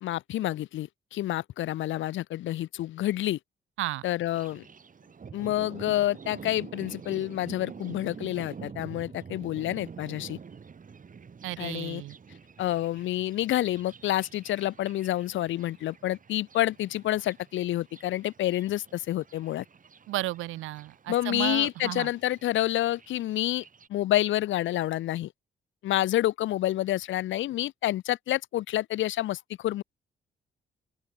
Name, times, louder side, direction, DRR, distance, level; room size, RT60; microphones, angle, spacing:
voice 1, 0.0-3.4 4.0-4.7 5.3-10.4 11.6-12.0 12.6-19.6 21.1-23.6 23.9-25.3 25.8-29.8, left 14 dB, 75° left, 0.7 m, -28 dB
Thunder, 4.3-23.9, right 6 dB, 40° right, 2.5 m, -47 dB
voice 2, 11.4-12.1 20.1-22.1, right 17 dB, 85° right, 0.8 m, -33 dB
open air
cardioid pair, 70°, 20 cm